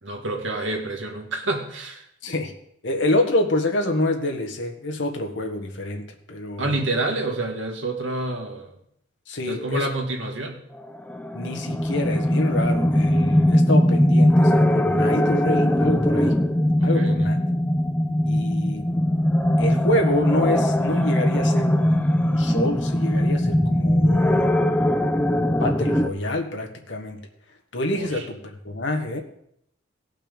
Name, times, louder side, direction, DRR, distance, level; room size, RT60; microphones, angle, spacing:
voice 1, 0.0-2.0 6.6-8.7 9.5-10.6 16.8-17.4 27.9-28.2, right 2 dB, 80° right, 2 dB, 2.0 m, -28 dB
voice 2, 2.2-2.5 2.8-6.8 9.3-9.9 11.3-16.3 16.8-17.4 18.3-18.8 19.6-24.5 25.6-27.2 27.7-29.2, left 1 dB, 70° left, 3 dB, 1.5 m, -27 dB
sound 1, 10.8-26.1, left 1 dB, 10° left, 0.5 m, -20 dB
17.0 x 5.8 x 5.3 m, 0.72 s
head